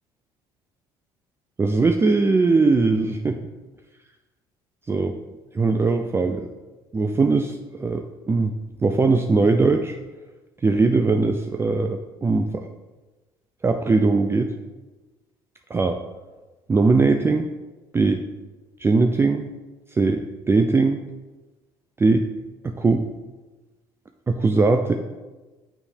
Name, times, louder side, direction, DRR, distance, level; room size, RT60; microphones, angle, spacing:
voice 1, 1.6-3.4 4.9-5.1 5.5-6.5 6.9-8.5 8.8-10.0 10.6-12.7 13.6-14.5 15.7-16.0 16.7-17.5 17.9-18.2 18.8-19.4 19.9-21.0 22.0-22.3 22.6-23.1 24.3-25.0, right 3 dB, 20° right, 6 dB, 0.4 m, -20 dB
6.9 x 3.4 x 4.3 m, 1.2 s
hypercardioid pair, 65°, 13 cm